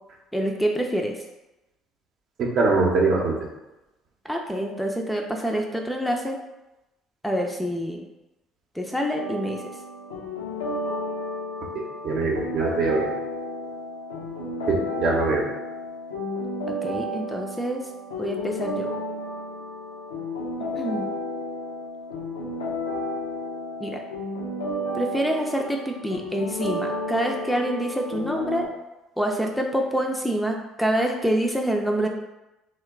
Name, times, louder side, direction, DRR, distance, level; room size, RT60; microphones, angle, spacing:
voice 1, 0.3-1.1 4.2-6.4 7.2-8.1 8.8-9.6 16.8-17.8 18.2-18.9 20.8-21.1 23.8-24.0 24.9-28.7 29.2-32.1, equal, 5° left, 2 dB, 0.4 m, -26 dB
voice 2, 2.4-3.4 12.0-13.1 14.7-15.4, right 3 dB, 50° right, -1 dB, 0.7 m, -22 dB
sound 1, 9.1-28.7, left 1 dB, 80° left, 0.5 m, -32 dB
2.9 x 2.2 x 3.4 m, 0.98 s
figure-of-eight pair, 55°, 0 cm